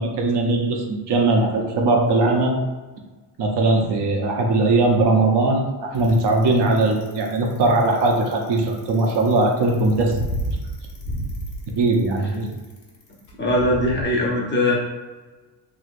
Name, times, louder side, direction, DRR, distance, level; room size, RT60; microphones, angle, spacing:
voice 1, 0.0-2.6 3.4-10.2 11.7-12.5, right 2 dB, 55° right, 1 dB, 0.8 m, -20 dB
Bicycle, 5.9-14.0, equal, 60° left, 1.1 m, -31 dB
voice 2, 13.4-14.7, left 1 dB, 25° left, -3 dB, 0.7 m, -20 dB
3.3 x 2.9 x 2.5 m, 1.3 s
cardioid pair, 105°, 49 cm